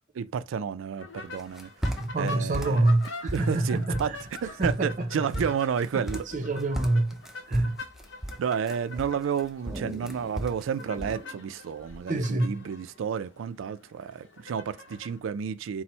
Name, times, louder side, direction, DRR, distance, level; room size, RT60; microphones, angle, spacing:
voice 1, 0.1-2.9 3.3-4.1 4.4-6.3 8.4-15.8, right 7 dB, 85° right, 0.3 m, -31 dB
sound 1, 1.0-15.2, left 3 dB, 70° left, 0.7 m, -45 dB
sound 2, 1.4-2.3 2.5-3.6 3.9-4.4 4.6-4.9 5.1-6.4 6.7-9.4 9.7-10.7 11.0-11.2, right 1 dB, ahead, 0.4 m, -34 dB
voice 2, 2.0-4.2 4.6-5.1 6.3-7.2 7.5-7.8 12.1-12.5, right 2 dB, 40° right, 0.6 m, -26 dB
sound 3, 4.1-5.3 6.3-6.8 7.3-8.1 8.7-12.1, right 1 dB, 15° right, 1.1 m, -46 dB
4.2 x 2.1 x 4.2 m
head